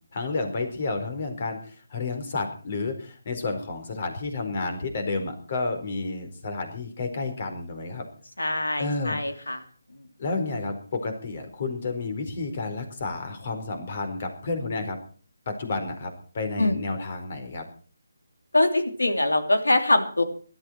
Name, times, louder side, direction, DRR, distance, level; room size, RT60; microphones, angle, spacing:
voice 1, 0.1-8.0 8.8-9.5 10.2-15.0 15.5-17.6, left 3 dB, 45° left, 7 dB, 4.4 m, -31 dB
voice 2, 8.4-9.6 16.6-16.8 18.5-20.2, left 2 dB, 85° left, 8 dB, 3.0 m, -23 dB
19.0 x 13.0 x 4.6 m, 0.42 s
figure-of-eight pair, 155°, 0 cm